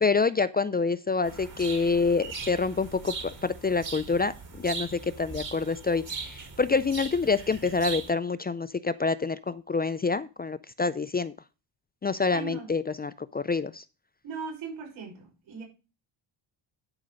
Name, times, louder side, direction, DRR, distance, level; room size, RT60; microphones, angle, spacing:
voice 1, 0.0-11.3 12.0-13.8, left 4 dB, 20° left, 0.4 m, -27 dB
sound 1, 1.2-8.1, right 5 dB, 45° right, 4.3 m, -39 dB
voice 2, 12.3-12.7 14.2-15.6, right 5 dB, 80° right, 6.0 m, -38 dB
10.5 x 5.1 x 5.5 m
cardioid pair, 115°, 46 cm